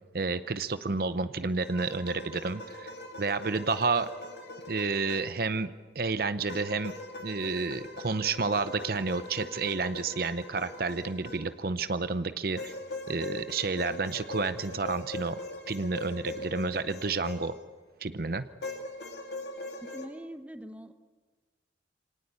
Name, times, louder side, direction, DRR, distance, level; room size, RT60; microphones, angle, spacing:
voice 1, 0.1-2.9 3.2-4.1 4.7-6.9 7.2-12.7 13.1-15.4 15.7-17.5 18.0-18.4, right 4 dB, 55° right, 12 dB, 0.7 m, -30 dB
sound 1, 1.6-5.5 6.5-11.8 12.6-17.8 18.6-20.1, left 2 dB, 70° left, 2.5 m, -41 dB
voice 2, 19.8-20.9, equal, 10° right, 8 dB, 1.0 m, -43 dB
26.0 x 18.5 x 8.2 m, 1.4 s
head